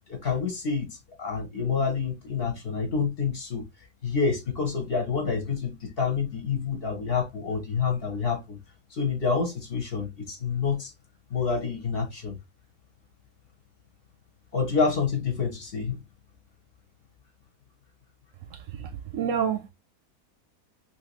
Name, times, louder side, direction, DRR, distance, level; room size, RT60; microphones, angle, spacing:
voice 1, 0.1-3.7 4.0-8.6 8.9-10.9 11.3-12.4 14.5-15.9, left 5 dB, 45° left, 1.0 m, -28 dB
voice 2, 18.5-19.7, right 7 dB, 70° right, 0.9 m, -29 dB
3.1 x 2.8 x 2.9 m
omnidirectional pair, 1.6 m